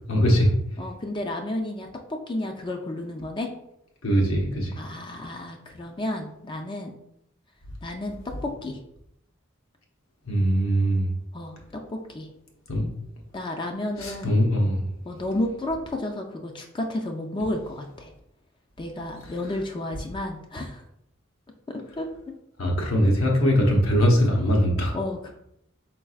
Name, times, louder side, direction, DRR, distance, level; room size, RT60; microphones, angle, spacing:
voice 1, 0.1-0.5 4.0-4.8 10.3-11.1 12.7-12.9 14.0-14.8 22.6-24.9, equal, 90° left, 0 dB, 1.0 m, -21 dB
voice 2, 0.8-3.5 4.8-6.9 7.8-8.8 11.3-12.3 13.3-14.3 15.1-18.1 18.8-20.8 21.7-22.1 24.9-25.3, left 1 dB, 25° left, 3 dB, 0.4 m, -32 dB
4.5 x 4.0 x 2.3 m, 0.78 s
head